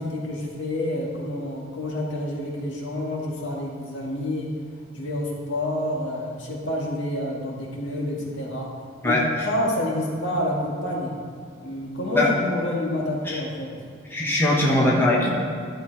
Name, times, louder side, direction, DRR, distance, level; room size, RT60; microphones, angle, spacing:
voice 1, 0.0-4.5 4.9-8.7 9.0-9.2 9.4-11.1 11.6-13.7, left 1 dB, 60° left, -2 dB, 2.0 m, -28 dB
voice 2, 14.1-15.3, left 1 dB, 10° left, -5 dB, 1.4 m, -20 dB
12.0 x 7.7 x 4.7 m, 2.3 s
head